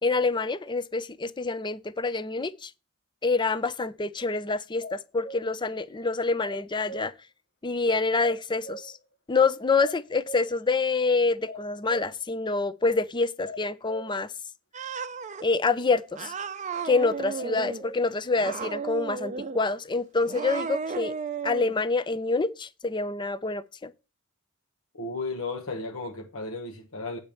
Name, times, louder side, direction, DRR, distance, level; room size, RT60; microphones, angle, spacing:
voice 1, 0.0-2.7 3.2-7.1 7.6-8.9 9.3-14.3 15.4-16.3 16.8-21.1 21.4-23.9, left 3 dB, 20° left, 0.5 m, -26 dB
sound 1, 4.8-5.5 6.4-7.1 8.2-9.0 9.8-10.5 11.4-12.1 13.4-14.1 17.4-18.0, equal, 45° left, 1.0 m, -40 dB
Cat, 14.7-15.4 16.2-17.8 18.3-19.6 20.2-21.7, right 5 dB, 35° right, 0.5 m, -34 dB
voice 2, 24.9-27.2, left 3 dB, 65° left, 1.2 m, -34 dB
8.8 x 4.3 x 6.8 m
head